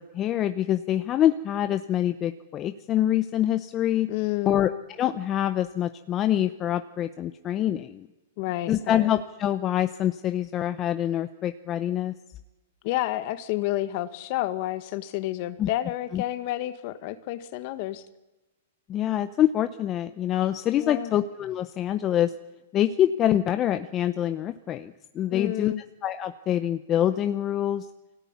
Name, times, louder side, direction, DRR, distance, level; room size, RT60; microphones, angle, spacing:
voice 1, 0.1-4.1 4.5-4.7 5.0-8.1 8.7-12.1 15.6-15.7 16.1-16.2 18.9-22.3 22.7-25.7 26.0-27.9, left 11 dB, 25° left, 10 dB, 0.8 m, -25 dB
voice 2, 4.1-4.6 8.4-9.1 12.8-18.0 20.7-21.1 25.3-25.8, left 15 dB, 45° left, 12 dB, 1.6 m, -30 dB
24.5 x 17.5 x 9.7 m, 1.1 s
hypercardioid pair, 150°, 0 cm